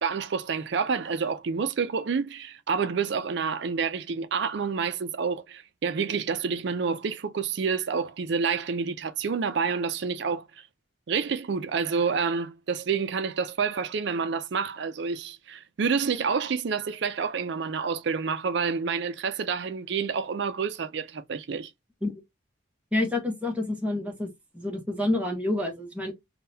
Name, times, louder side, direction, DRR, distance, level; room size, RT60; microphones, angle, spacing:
voice 1, 0.0-10.4 11.1-21.7, right 5 dB, 60° right, 0.4 m, -28 dB
voice 2, 22.9-26.1, left 2 dB, 5° right, 0.9 m, -28 dB
3.6 x 2.2 x 2.7 m
head